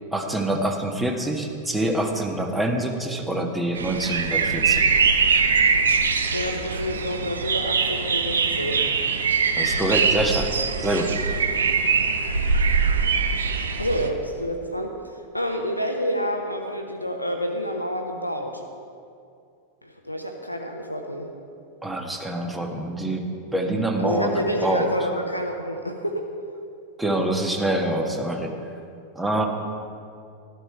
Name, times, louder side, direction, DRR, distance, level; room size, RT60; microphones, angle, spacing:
voice 1, 0.1-4.8 9.6-10.5 10.8-11.2 21.8-24.3 24.6-24.9 27.0-28.5 29.1-29.5, right 1 dB, 5° right, 3 dB, 1.4 m, -25 dB
sound 1, 3.8-14.1, right 5 dB, 70° right, 0.8 m, -22 dB
voice 2, 6.3-8.9 13.8-18.6 19.8-21.3 24.0-26.3, equal, 85° left, 3 dB, 0.9 m, -28 dB
13.0 x 12.5 x 4.6 m, 2.4 s
figure-of-eight pair, 90°, 0 cm